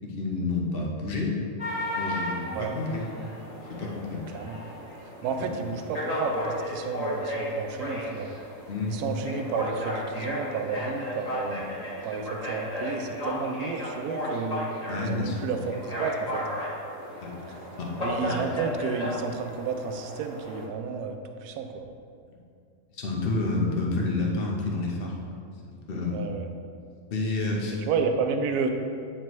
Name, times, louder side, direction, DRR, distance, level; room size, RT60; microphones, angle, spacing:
voice 1, 0.0-1.4 1.9-3.1 3.7-4.3 8.7-9.0 11.5-11.6 14.9-15.5 17.2-17.4 17.8-17.9 18.3-18.4 22.9-25.4 25.9-26.2 27.1-27.9, left 3 dB, 45° left, -1 dB, 0.9 m, -29 dB
sound 1, 1.6-20.7, left 1 dB, 25° left, 1.2 m, -34 dB
voice 2, 5.2-8.4 8.9-11.6 12.0-14.6 15.0-16.6 18.0-21.9 26.1-26.5 27.9-28.7, right 5 dB, 80° right, 6 dB, 1.1 m, -31 dB
9.0 x 4.3 x 3.0 m, 2.4 s
omnidirectional pair, 1.7 m